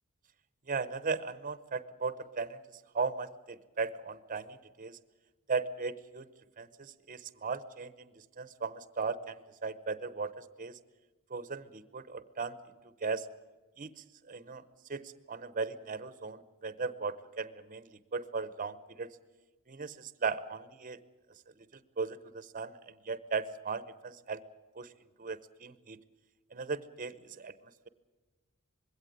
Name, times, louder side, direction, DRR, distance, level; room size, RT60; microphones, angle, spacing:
voice 1, 0.7-2.6 2.9-5.0 5.5-6.3 6.6-10.8 11.3-12.6 13.0-13.3 13.8-13.9 14.3-14.6 14.9-19.1 19.7-21.0 21.7-24.4 24.8-24.9 25.2-26.0 26.5-27.5, right 4 dB, 40° right, 15 dB, 0.8 m, -37 dB
21.5 x 16.5 x 9.3 m, 1.2 s
head